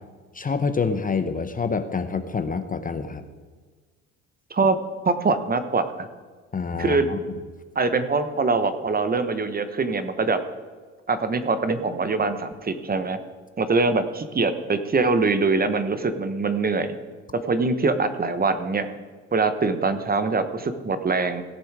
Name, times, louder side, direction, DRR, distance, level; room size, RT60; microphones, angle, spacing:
voice 1, 0.3-3.2 6.5-7.2, left 5 dB, 25° left, 10 dB, 0.8 m, -27 dB
voice 2, 5.0-6.1 6.8-7.1 7.7-10.4 11.1-13.2 13.6-17.0 17.3-18.9 19.3-21.4, right 4 dB, 25° right, 10 dB, 1.1 m, -23 dB
17.0 x 6.9 x 4.8 m, 1.4 s
hypercardioid pair, 70°, 35 cm